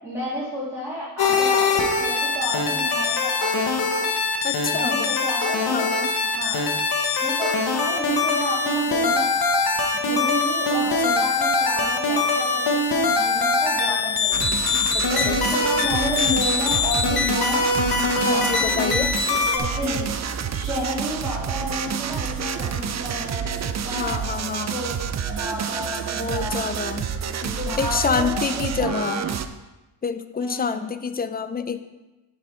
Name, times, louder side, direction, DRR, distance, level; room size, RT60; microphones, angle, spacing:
voice 1, 0.0-3.6 3.8-4.1 4.7-5.9 6.3-6.6 7.2-9.3 9.9-14.6 15.1-17.7 18.3-20.0 20.5-24.2 24.6-24.9 25.3-26.6 27.3-29.3 30.4-30.8, equal, 5° right, -10 dB, 2.8 m, -31 dB
sound 1, 1.2-19.6, left 3 dB, 50° left, 1.2 m, -22 dB
voice 2, 4.4-5.3 5.7-6.1 10.8-11.3 14.9-15.9 18.2-19.1 19.8-20.1 24.0-24.8 26.1-27.1 27.4-29.2 30.0-31.8, left 5 dB, 20° left, 11 dB, 0.4 m, -28 dB
sound 2, 14.3-29.5, right 7 dB, 35° right, 0.5 m, -29 dB
10.5 x 4.3 x 4.4 m, 1.1 s
cardioid pair, 80°, 46 cm